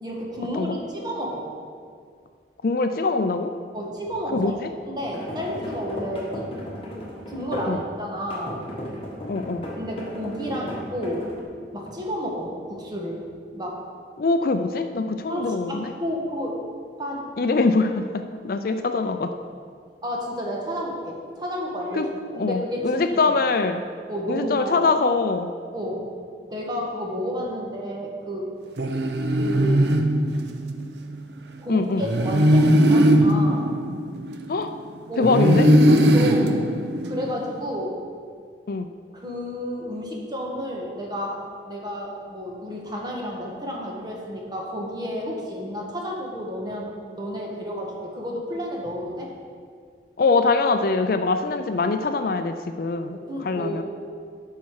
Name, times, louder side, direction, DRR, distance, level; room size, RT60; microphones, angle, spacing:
voice 1, 0.0-1.5 3.7-4.5 4.8-6.5 7.1-8.6 9.7-11.3 11.7-13.2 13.5-13.8 15.3-16.6 17.0-17.3 20.0-22.1 22.3-23.0 24.1-24.7 25.7-26.1 26.5-28.5 29.3-29.8 31.6-33.7 35.1-35.3 35.9-36.6 37.0-38.0 39.1-49.3 53.1-53.8, equal, 25° right, -2 dB, 1.5 m, -31 dB
voice 2, 2.6-3.5 4.3-4.7 7.7-7.8 9.3-9.7 14.2-15.9 17.4-19.3 21.9-23.8 24.3-25.5 31.7-32.0 34.5-34.7 35.2-35.7 38.7-38.9 50.2-53.8, left 3 dB, 55° left, 8 dB, 0.4 m, -23 dB
sound 1, 5.0-7.8 8.3-11.4, left 1 dB, 30° left, 1.7 m, -35 dB
sound 2, 28.8-30.9 32.0-34.7 35.2-37.5, equal, 75° right, 0.7 m, -19 dB
12.5 x 5.7 x 4.8 m, 2.1 s
head